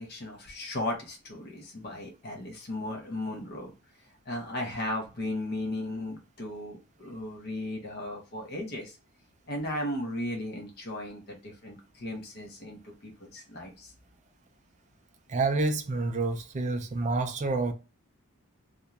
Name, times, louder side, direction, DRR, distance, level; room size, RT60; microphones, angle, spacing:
voice 1, 0.0-3.7 4.3-9.0 9.5-13.9, left 1 dB, 45° left, 0.6 m, -36 dB
voice 2, 15.3-17.7, right 3 dB, 30° right, 0.4 m, -28 dB
2.4 x 2.1 x 2.8 m
head